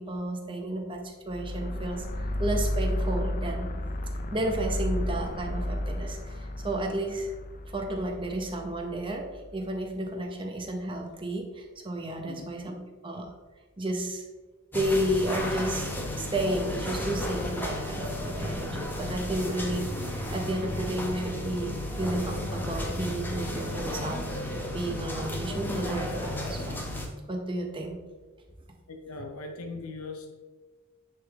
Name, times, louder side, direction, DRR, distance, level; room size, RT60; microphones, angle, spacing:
voice 1, 0.0-3.7 4.3-7.3 7.7-12.7 13.0-13.3 13.8-14.3 14.7-15.9 16.2-26.8 27.3-28.0, right 1 dB, 25° right, 2 dB, 0.9 m, -32 dB
sound 1, 1.3-9.6, left 1 dB, 40° left, 0.5 m, -32 dB
sound 2, 14.7-27.1, left 1 dB, 10° left, 0.8 m, -33 dB
voice 2, 28.9-30.3, left 3 dB, 90° left, 4 dB, 0.6 m, -40 dB
10.0 x 3.6 x 3.5 m, 1.3 s
head